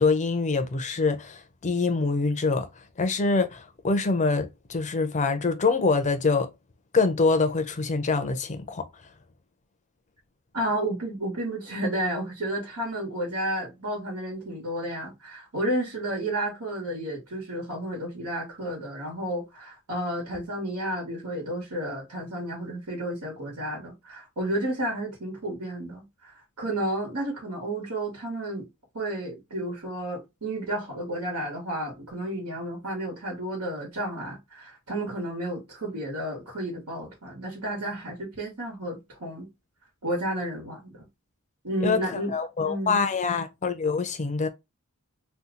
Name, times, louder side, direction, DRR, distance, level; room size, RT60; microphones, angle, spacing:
voice 1, 0.0-2.7 3.0-6.5 6.9-8.8 41.8-44.5, left 4 dB, 35° left, 0.5 m, -25 dB
voice 2, 10.5-28.7 28.9-39.5 40.0-41.1 41.6-42.3 42.6-43.0, right 1 dB, 90° right, 1.3 m, -32 dB
2.7 x 2.3 x 3.7 m
head